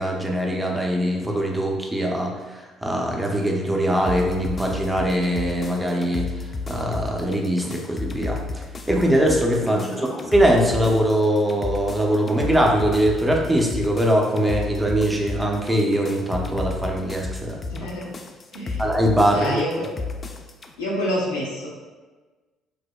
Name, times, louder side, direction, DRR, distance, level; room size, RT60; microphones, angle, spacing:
voice 1, 0.0-6.3 6.7-8.4 8.9-17.9 18.8-19.6, right 1 dB, 15° right, 0 dB, 0.6 m, -22 dB
sound 1, 4.1-20.7, left 3 dB, 35° left, 0.3 m, -33 dB
voice 2, 9.6-10.1 17.7-18.1 18.5-18.8 19.3-19.9 20.8-21.7, equal, 80° left, -5 dB, 0.7 m, -28 dB
4.9 x 2.0 x 2.3 m, 1.3 s
figure-of-eight pair, 50°, 0 cm